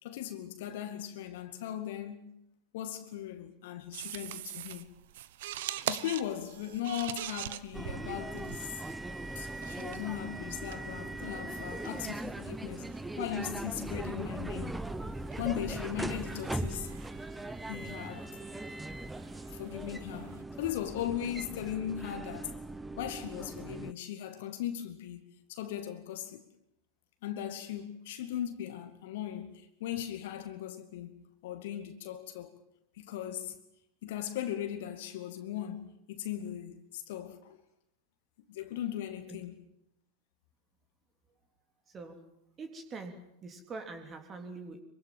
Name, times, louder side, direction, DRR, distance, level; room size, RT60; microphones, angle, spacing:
voice 1, 0.0-2.3 2.7-4.9 5.9-8.7 9.4-12.9 13.2-14.8 15.4-16.9 17.7-18.4 19.5-22.6 23.0-26.5 27.2-32.5 33.0-33.6 34.0-37.6 38.5-39.6, left 11 dB, 55° left, 2.3 m, -38 dB
sound 1, 3.9-20.4, right 13 dB, 55° right, 1.1 m, -45 dB
sound 2, 7.7-23.9, right 2 dB, 5° right, 1.0 m, -40 dB
voice 2, 41.9-42.2 42.6-44.8, right 3 dB, 25° right, 3.3 m, -44 dB
25.5 x 24.0 x 7.4 m
figure-of-eight pair, 90°, 0 cm